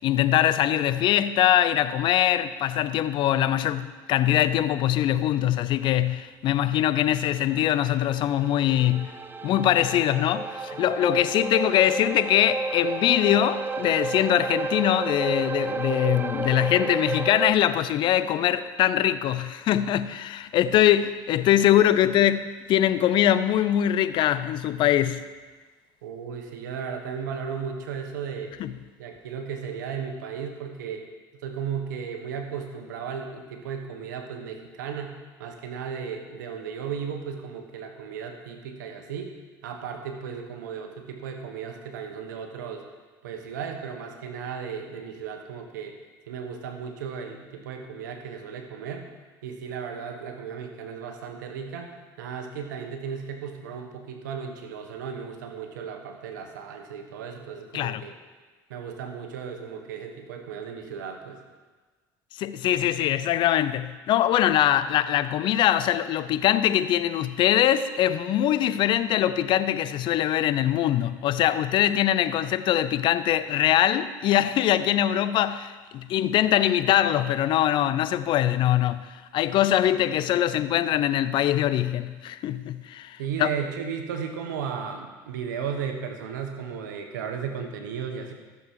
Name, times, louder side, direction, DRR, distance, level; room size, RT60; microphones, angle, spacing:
voice 1, 0.0-25.2 28.6-28.7 57.7-58.0 62.4-79.1 79.3-83.5, left 12 dB, 55° left, 0.6 m, -23 dB
sound 1, 7.2-17.5, right 4 dB, 20° right, 0.5 m, -31 dB
voice 2, 26.0-28.6 29.0-31.1 31.4-39.3 39.6-42.8 43.2-46.0 46.3-49.1 49.4-58.1 58.7-61.4 83.2-88.3, right 7 dB, 90° right, 1.3 m, -35 dB
14.0 x 7.2 x 4.8 m
supercardioid pair, 85°, 10 cm